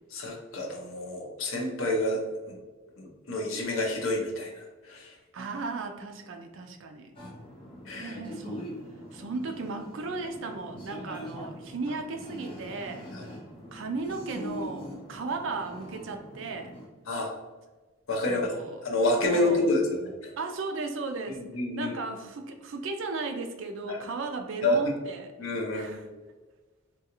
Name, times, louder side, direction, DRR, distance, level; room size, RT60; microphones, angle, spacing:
voice 1, 0.1-2.6 3.0-5.1 7.9-8.2 13.1-13.3 17.1-17.3 18.1-18.5 18.8-20.3 21.4-21.9 23.9-24.0 24.6-24.8 25.4-26.1, left 2 dB, 70° left, 0 dB, 0.7 m, -29 dB
voice 2, 5.3-7.1 7.9-8.7 9.1-13.1 13.7-16.8 18.3-18.8 19.2-19.7 20.4-21.4 21.7-25.3 25.7-26.0, right 3 dB, 60° right, 5 dB, 0.4 m, -35 dB
sound 1, 7.1-16.8, equal, 25° left, 0.7 m, -42 dB
3.6 x 2.3 x 2.9 m, 1.3 s
head